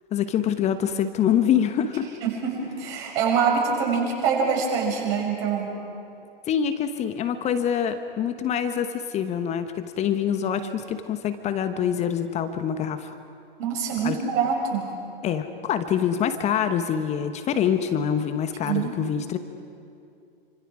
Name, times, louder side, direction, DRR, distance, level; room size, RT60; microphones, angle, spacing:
voice 1, 0.1-2.1 6.5-13.1 14.0-14.2 15.2-19.4, left 8 dB, 20° left, 10 dB, 1.1 m, -25 dB
voice 2, 2.2-5.7 13.6-14.9 18.6-19.1, right 6 dB, 40° right, -2 dB, 6.5 m, -25 dB
27.5 x 26.0 x 5.0 m, 2.5 s
figure-of-eight pair, 110°, 30 cm